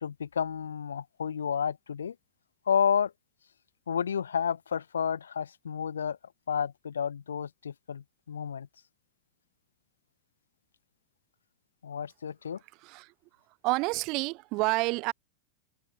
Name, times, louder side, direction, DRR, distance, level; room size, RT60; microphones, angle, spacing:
voice 1, 0.0-2.1 2.7-3.1 3.9-6.2 6.5-8.7 11.8-12.6, left 7 dB, 70° left, 1.1 m, -31 dB
voice 2, 13.6-15.1, right 25 dB, 40° right, 0.8 m, -29 dB
figure-of-eight pair, 90°, 0 cm